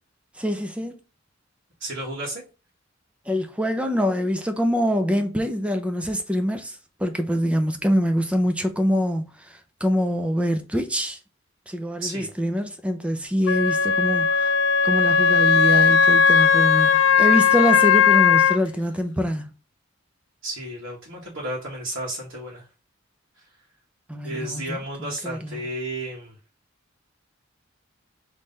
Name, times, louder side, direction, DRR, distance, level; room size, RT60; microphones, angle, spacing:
voice 1, 0.4-1.0 3.3-11.2 11.7-14.6 14.8-19.5 24.1-25.6, equal, 5° right, 0.5 m, -25 dB
voice 2, 1.8-2.4 12.0-12.3 20.4-22.7 23.4-23.5 24.2-26.4, right 1 dB, 85° right, 1.6 m, -32 dB
Wind instrument woodwind instrument, 13.5-18.6, left 6 dB, 70° left, 0.5 m, -17 dB
3.8 x 3.2 x 4.0 m
head